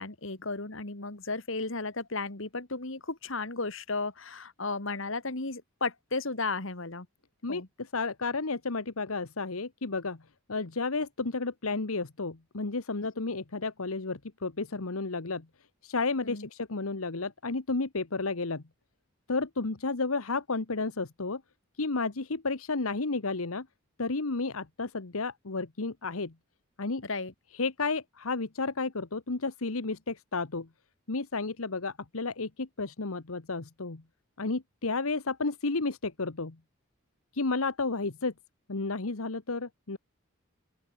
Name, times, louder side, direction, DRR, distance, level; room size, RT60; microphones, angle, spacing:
voice 1, 0.0-7.1 7.5-7.7 16.2-16.5 27.0-27.3, left 3 dB, 60° left, 2.2 m, -34 dB
voice 2, 7.4-10.2 10.5-15.5 15.8-18.6 19.3-21.4 21.8-23.7 24.0-26.3 26.8-27.0 27.5-30.7 31.1-34.0 34.4-36.6 37.3-38.3 38.7-40.0, left 3 dB, 80° left, 1.3 m, -32 dB
open air
head